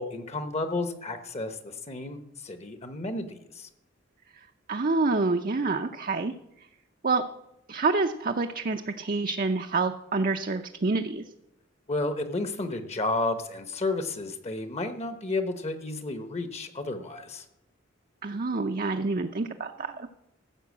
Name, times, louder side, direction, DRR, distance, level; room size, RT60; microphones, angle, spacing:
voice 1, 0.0-3.7 11.9-17.5, left 2 dB, 35° left, 9 dB, 1.0 m, -32 dB
voice 2, 4.3-6.3 7.0-7.2 7.7-11.2 18.2-20.1, right 3 dB, 45° right, 6 dB, 0.6 m, -27 dB
14.5 x 6.9 x 8.3 m, 0.87 s
head